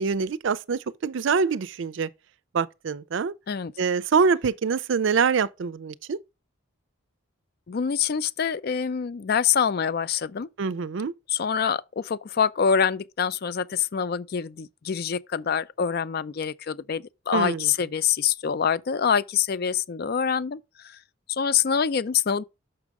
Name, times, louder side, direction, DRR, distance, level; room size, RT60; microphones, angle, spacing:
voice 1, 0.0-2.1 2.5-3.3 3.8-6.2 10.6-11.1 17.3-17.7, right 5 dB, 65° right, 0.4 m, -25 dB
voice 2, 7.7-10.5 11.3-21.0 21.3-22.4, left 7 dB, 50° left, 0.4 m, -25 dB
6.3 x 5.9 x 4.7 m
head